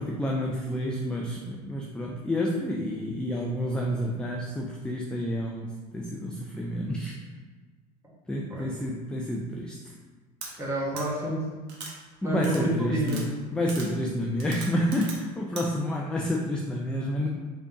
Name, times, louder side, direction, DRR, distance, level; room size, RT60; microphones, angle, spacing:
voice 1, 0.0-7.1 8.3-9.9 12.2-13.3 13.5-17.3, equal, 5° left, -2 dB, 0.4 m, -29 dB
voice 2, 10.4-11.5 12.2-13.3, right 1 dB, 15° right, -5 dB, 1.3 m, -29 dB
sound 1, 10.4-10.5 11.0-11.1 11.7-11.9 12.4-12.6 13.1-13.2 13.7-13.9 14.4-15.2 15.6-15.7, right 4 dB, 55° right, 0.9 m, -39 dB
3.8 x 3.3 x 2.8 m, 1.4 s
figure-of-eight pair, 70°, 20 cm